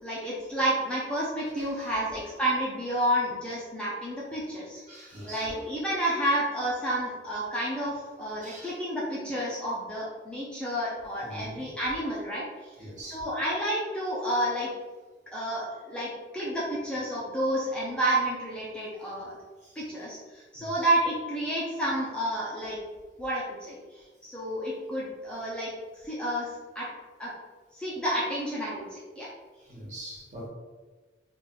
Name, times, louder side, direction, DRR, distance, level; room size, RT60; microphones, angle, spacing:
voice 1, 0.0-14.7 15.3-19.3 19.8-22.8 23.2-25.7 26.0-26.5 26.7-26.9 27.2-27.3 27.7-29.3, right 1 dB, 5° left, -7 dB, 0.6 m, -30 dB
voice 2, 1.4-1.9 4.7-5.6 8.4-8.8 11.2-11.6 12.8-13.2 19.6-19.8 20.5-20.9 24.7-24.8 29.6-30.5, right 1 dB, 40° right, -4 dB, 1.2 m, -43 dB
3.3 x 2.5 x 4.4 m, 1.3 s
head